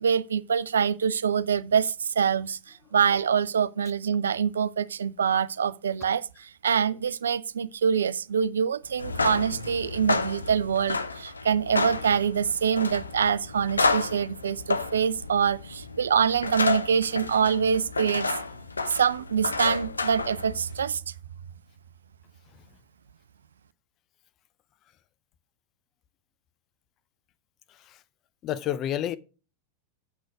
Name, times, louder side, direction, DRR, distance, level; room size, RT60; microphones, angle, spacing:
voice 1, 0.0-18.3 18.9-21.1, right 7 dB, 70° right, 0.5 m, -25 dB
sound 1, 8.9-20.8, left 3 dB, 80° left, 0.7 m, -31 dB
voice 2, 27.7-28.0 28.4-29.2, left 11 dB, 35° left, 0.6 m, -30 dB
8.1 x 6.1 x 6.1 m
figure-of-eight pair, 90°, 0 cm